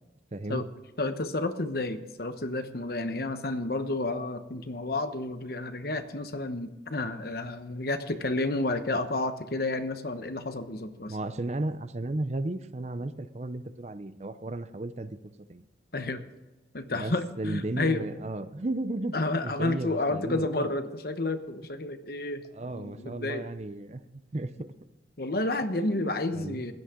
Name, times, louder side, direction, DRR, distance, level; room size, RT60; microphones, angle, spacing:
voice 1, 0.3-0.6 11.1-15.6 16.9-19.1 19.4-20.7 22.5-24.5 25.7-26.7, right 2 dB, 40° right, 12 dB, 0.6 m, -34 dB
voice 2, 1.0-11.2 15.9-16.2 16.7-18.1 19.1-23.5 25.2-26.7, left 2 dB, 55° left, 9 dB, 1.0 m, -31 dB
16.0 x 11.5 x 3.8 m, 1.1 s
head